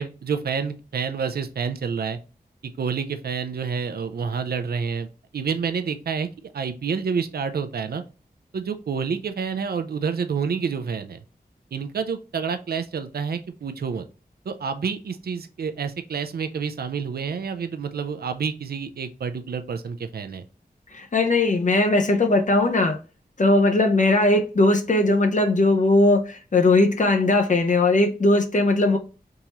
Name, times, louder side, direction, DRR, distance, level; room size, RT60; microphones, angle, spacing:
voice 1, 0.0-2.2 2.6-5.1 5.3-6.3 6.5-8.0 8.5-11.2 11.7-14.0 14.5-20.4, right 6 dB, 70° right, 0.4 m, -28 dB
voice 2, 20.9-23.0 23.4-29.0, left 2 dB, 50° left, 0.5 m, -19 dB
3.6 x 3.0 x 2.8 m
wide cardioid pair, 55°, 16 cm